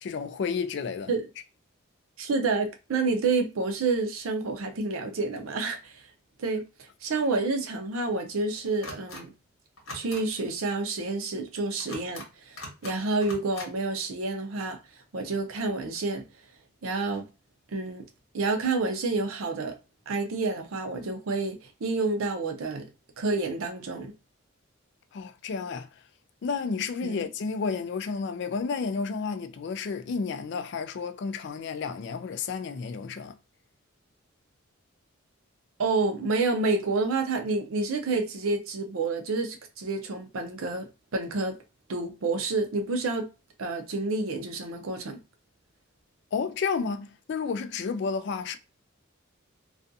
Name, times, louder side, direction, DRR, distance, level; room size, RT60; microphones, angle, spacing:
voice 1, 0.0-1.1 25.1-25.9 26.4-33.3 46.3-48.6, left 5 dB, 55° left, 0.3 m, -31 dB
voice 2, 2.2-6.0 6.4-9.3 9.9-14.8 15.1-16.2 16.8-17.2 17.7-18.0 18.3-19.7 20.1-22.9 23.2-24.1 27.0-27.2 35.8-40.9 41.1-41.6 41.9-43.3 43.6-45.2, right 3 dB, 85° right, 0.6 m, -29 dB
sound 1, 8.8-9.2 9.8-10.2 11.8-12.3 12.6-13.0 13.2-13.7, left 2 dB, 75° left, 1.0 m, -41 dB
2.4 x 2.3 x 2.6 m
head